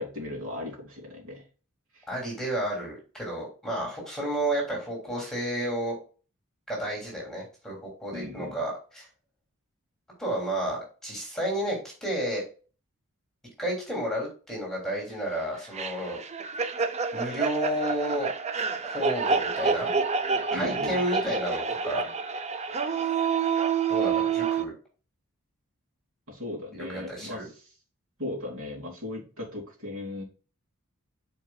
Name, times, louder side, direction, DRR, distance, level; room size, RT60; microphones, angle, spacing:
voice 1, 0.0-1.4 1.9-2.0 8.1-8.6 20.5-21.0 26.3-27.7 28.2-30.2, left 2 dB, 70° right, -1 dB, 3.1 m, -37 dB
voice 2, 2.1-6.0 6.7-9.1 10.2-12.4 13.6-16.2 17.1-18.3 18.8-19.9 20.5-22.1 22.8-23.1 23.9-24.7 26.9-27.5, right 1 dB, ahead, -2 dB, 3.0 m, -31 dB
sound 1, 15.7-24.7, right 5 dB, 30° right, 0.6 m, -28 dB
8.7 x 4.5 x 2.4 m, 0.35 s
head